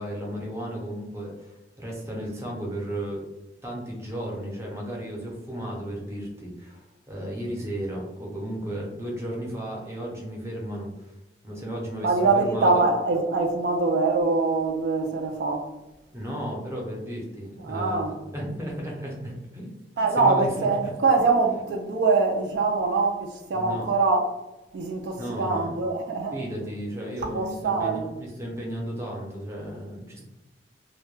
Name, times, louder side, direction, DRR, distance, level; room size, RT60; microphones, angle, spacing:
voice 1, 0.0-3.2 3.6-11.1 11.4-12.9 16.1-19.7 20.2-20.9 23.5-23.9 25.2-25.7 26.3-30.2, right 1 dB, 15° right, 0.6 m, -34 dB
voice 2, 12.0-15.7 17.6-18.1 20.0-24.2 24.7-26.4 27.2-28.1, right 3 dB, 70° right, 0.3 m, -23 dB
2.1 x 2.1 x 3.0 m
head